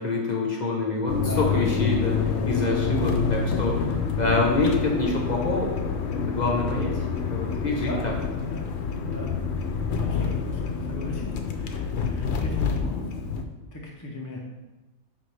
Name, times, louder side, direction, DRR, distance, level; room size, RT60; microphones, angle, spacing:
voice 1, 0.0-5.7 6.1-7.0 7.3-8.1, left 2 dB, 40° left, -1 dB, 1.0 m, -26 dB
sound 1, 1.1-13.4, left 5 dB, 70° left, 0.9 m, -27 dB
voice 2, 1.3-1.6 7.7-8.1 8.4-8.6 9.0-9.3 10.0-13.0 13.7-14.4, left 1 dB, 20° left, -2 dB, 0.7 m, -36 dB
9.7 x 3.5 x 3.3 m, 1.1 s
omnidirectional pair, 1.2 m